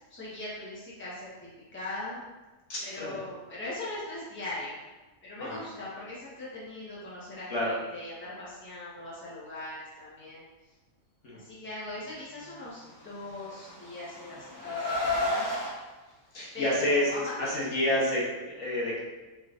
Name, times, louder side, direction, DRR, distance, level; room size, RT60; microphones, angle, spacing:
voice 1, 0.1-1.3 1.7-2.2 2.8-4.8 5.2-10.4 11.3-15.5 16.5-17.7, left 2 dB, 10° left, -8 dB, 0.9 m, -40 dB
voice 2, 2.7-3.2 5.4-5.6 7.5-7.7 11.2-11.4 16.3-17.1 17.4-19.0, left 1 dB, 60° left, -6 dB, 1.2 m, -29 dB
Car, 13.2-15.7, left 2 dB, 30° left, 1.7 m, -31 dB
4.2 x 3.4 x 2.5 m, 1.2 s
omnidirectional pair, 1.5 m